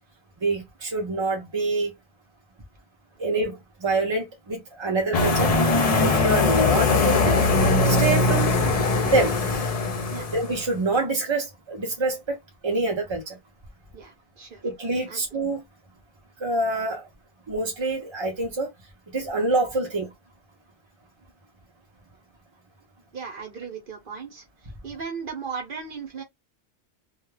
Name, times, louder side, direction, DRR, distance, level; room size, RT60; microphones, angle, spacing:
voice 1, 0.4-1.9 3.2-5.6 6.0-7.4 7.8-8.5 9.0-9.3 10.3-12.4 12.6-13.4 14.6-15.6 16.4-17.1 17.5-18.7 19.1-20.1, right 2 dB, 35° right, 0.4 m, -26 dB
sound 1, 5.1-10.6, left 3 dB, 50° left, 0.5 m, -21 dB
voice 2, 13.9-14.6 15.1-15.2 23.1-24.4 24.8-26.2, right 5 dB, 55° right, 0.8 m, -36 dB
2.3 x 2.1 x 3.1 m
omnidirectional pair, 1.2 m